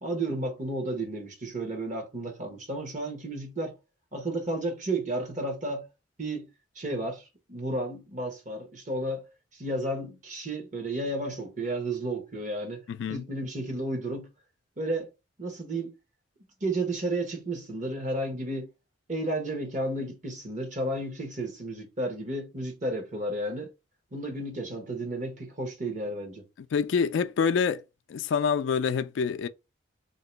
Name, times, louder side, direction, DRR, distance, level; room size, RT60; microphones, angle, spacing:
voice 1, 0.0-3.7 4.1-5.9 6.2-6.5 6.7-9.2 9.5-12.8 13.1-14.3 14.8-15.1 15.4-15.9 16.6-18.7 19.1-23.7 24.1-26.4, right 1 dB, 40° right, 1.1 m, -32 dB
voice 2, 12.9-13.2 26.7-27.8 28.1-29.5, left 6 dB, 70° left, 0.3 m, -26 dB
2.9 x 2.8 x 4.4 m
head